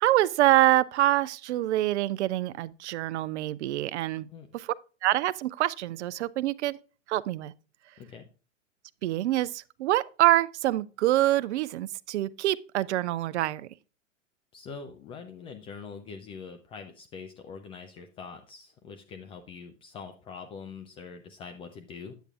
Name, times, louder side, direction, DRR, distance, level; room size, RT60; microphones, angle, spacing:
voice 1, 0.0-4.3 4.5-4.7 5.0-6.8 7.1-7.5 9.0-13.7, right 15 dB, 65° right, 0.5 m, -25 dB
voice 2, 14.5-22.1, left 5 dB, 15° left, 0.3 m, -44 dB
9.1 x 8.0 x 2.4 m
hypercardioid pair, 105°, 38 cm